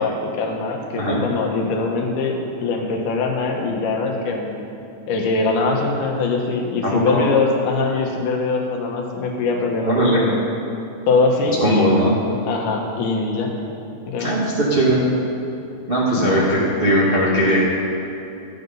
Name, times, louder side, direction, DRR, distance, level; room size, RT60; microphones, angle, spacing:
voice 1, 0.0-4.6 5.1-10.4 11.1-11.9 12.5-13.5 14.1-14.3 16.1-16.3, left 3 dB, 80° left, 1 dB, 2.7 m, -22 dB
voice 2, 6.8-7.2 9.8-10.2 11.6-12.1 14.2-15.0 15.9-17.6, right 1 dB, 40° right, -6 dB, 0.7 m, -18 dB
13.0 x 7.9 x 5.4 m, 2.7 s
omnidirectional pair, 3.6 m